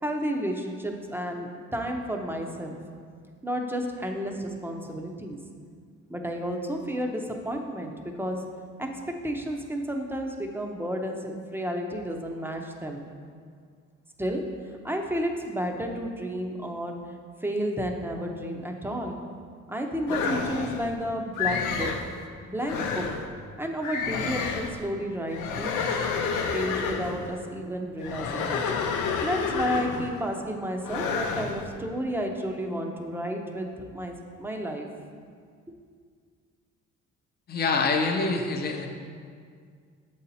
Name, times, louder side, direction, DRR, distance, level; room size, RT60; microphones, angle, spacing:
voice 1, 0.0-2.8 3.4-5.4 6.1-8.4 8.8-8.9 9.2-13.1 14.2-17.0 17.4-19.2 19.7-21.9 22.4-23.1 23.6-26.1 26.5-28.6 29.0-34.9, equal, 5° right, 2 dB, 0.7 m, -31 dB
sound 1, 20.1-20.9 21.4-22.1 22.6-23.3 23.8-24.8 25.3-27.3 28.0-30.2 30.8-31.6, left 5 dB, 85° left, 0.6 m, -29 dB
voice 2, 37.5-38.9, left 4 dB, 30° left, 3 dB, 0.6 m, -25 dB
7.3 x 4.2 x 4.1 m, 2.1 s
cardioid pair, 90°, 30 cm